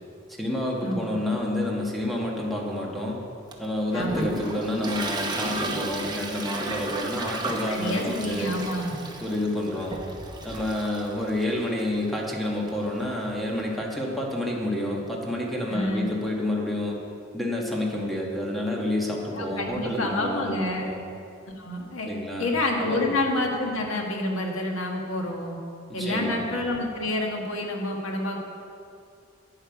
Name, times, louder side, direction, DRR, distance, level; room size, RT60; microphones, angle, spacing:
voice 1, 0.4-3.2 3.6-8.6 9.2-10.0 10.4-17.0 17.3-21.0 22.1-23.1 25.9-26.4, left 1 dB, ahead, -2 dB, 1.5 m, -29 dB
Toilet flush, 3.5-13.7, right 2 dB, 20° right, 0.9 m, -35 dB
voice 2, 3.9-4.3 7.7-9.0 15.7-16.1 19.3-20.9 21.6-22.1 22.4-25.6 25.9-28.4, left 1 dB, 80° left, 1 dB, 1.6 m, -28 dB
11.0 x 9.0 x 4.8 m, 2.4 s
head